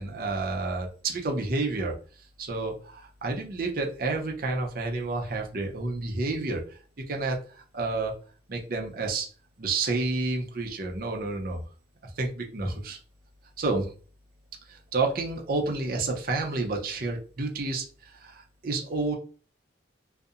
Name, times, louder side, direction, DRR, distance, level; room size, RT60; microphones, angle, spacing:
voice 1, 0.0-2.0 2.4-6.8 7.1-8.1 8.5-9.3 9.6-11.6 12.2-13.0 13.6-13.9 14.7-19.2, right 3 dB, 50° right, 1 dB, 0.5 m, -30 dB
2.6 x 2.0 x 2.4 m, 0.39 s
head